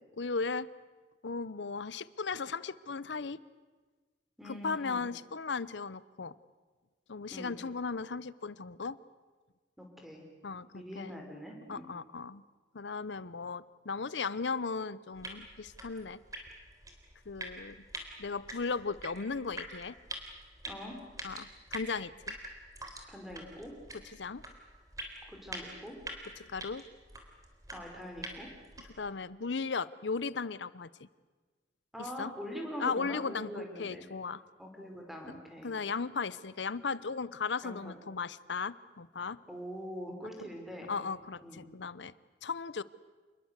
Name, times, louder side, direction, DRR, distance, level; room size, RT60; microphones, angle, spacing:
voice 1, 0.2-0.7 1.2-3.4 4.4-6.3 7.1-9.0 10.4-11.2 11.7-12.4 12.7-16.2 17.3-17.8 18.2-20.0 21.2-22.4 24.0-24.4 26.4-26.8 29.0-31.1 32.0-32.3 32.8-34.4 35.6-39.4 40.9-42.1 42.4-42.8, left 4 dB, 75° left, 18 dB, 0.8 m, -36 dB
voice 2, 4.4-5.0 7.3-7.5 9.8-10.2 10.7-11.8 20.7-21.0 23.1-23.7 25.3-26.0 27.7-28.5 31.9-34.1 34.6-35.7 37.6-38.0 39.5-40.9 41.4-41.6, equal, ahead, 2 dB, 4.7 m, -43 dB
sound 1, 15.1-29.1, right 1 dB, 20° right, 3.7 m, -46 dB
28.5 x 21.0 x 8.1 m, 1.4 s
head